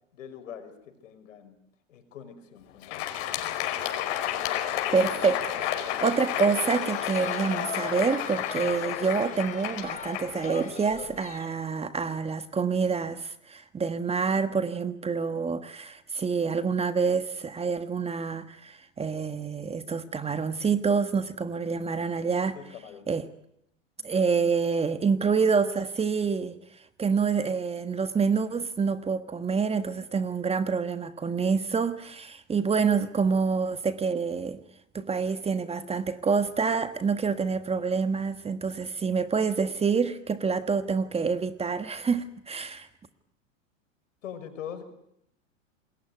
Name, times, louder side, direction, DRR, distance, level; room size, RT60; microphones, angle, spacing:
voice 1, 0.1-1.6 1.9-3.2 22.5-23.1 44.2-44.8, left 8 dB, 75° left, 5.7 m, -43 dB
Crowd, 2.7-11.2, left 12 dB, 55° left, 5.0 m, -31 dB
voice 2, 4.9-22.6 23.1-23.2 24.0-26.6 27.0-34.6 34.9-42.9, right 5 dB, 15° right, 1.4 m, -27 dB
sound 1, 6.7-11.6, left 6 dB, 20° left, 2.7 m, -40 dB
27.5 x 21.5 x 9.4 m
hypercardioid pair, 105°, 38 cm